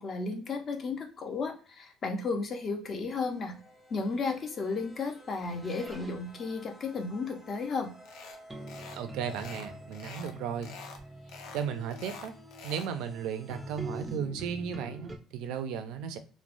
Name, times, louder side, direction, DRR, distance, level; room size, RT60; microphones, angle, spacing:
voice 1, 0.0-3.5 3.9-7.9, left 4 dB, 35° left, 4 dB, 0.5 m, -33 dB
sound 1, 3.2-14.2, equal, 10° left, 0.8 m, -54 dB
sound 2, 5.4-6.3 8.5-15.2, right 1 dB, 10° right, 0.4 m, -45 dB
sound 3, 8.1-8.4 8.7-9.0 9.3-10.3 10.6-11.0 11.3-12.9, left 5 dB, 80° left, 0.5 m, -46 dB
voice 2, 8.9-10.7 11.5-12.3 12.6-16.2, right 7 dB, 80° right, 9 dB, 0.4 m, -35 dB
3.1 x 2.0 x 2.5 m, 0.37 s
cardioid pair, 140°, 0 cm